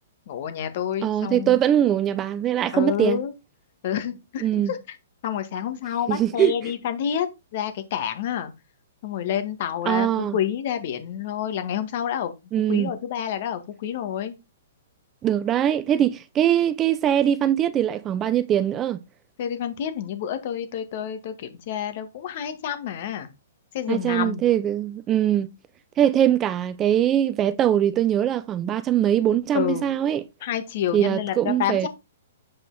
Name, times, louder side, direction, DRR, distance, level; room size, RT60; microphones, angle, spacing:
voice 1, 0.3-1.6 2.7-3.3 3.8-4.8 5.2-7.3 7.5-8.5 9.0-12.3 12.7-14.3 19.4-23.3 23.7-24.5 29.5-29.9 30.4-31.9, left 9 dB, 55° left, 1.7 m, -28 dB
voice 2, 1.0-3.2 4.4-4.7 6.1-6.7 9.9-10.4 12.5-12.9 15.2-19.0 23.9-25.5 26.0-30.2 30.9-31.9, right 10 dB, 25° right, 0.5 m, -22 dB
8.0 x 5.5 x 4.1 m
hypercardioid pair, 130°, 0 cm